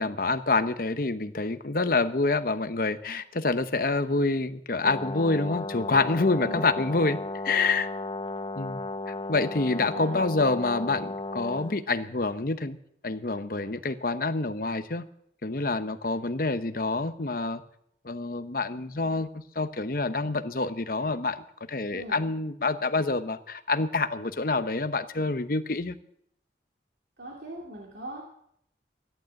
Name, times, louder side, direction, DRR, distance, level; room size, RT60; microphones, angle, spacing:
voice 1, 0.0-7.2 7.4-7.9 8.6-8.8 9.1-12.8 13.0-15.0 15.4-17.6 18.0-19.3 19.5-25.9, left 3 dB, 50° left, 11 dB, 0.9 m, -27 dB
Brass instrument, 4.8-11.8, left 2 dB, 30° left, 1.1 m, -35 dB
voice 2, 21.9-22.2 27.2-28.2, right 1 dB, 75° right, -2 dB, 2.8 m, -40 dB
14.5 x 11.5 x 7.8 m, 0.70 s
head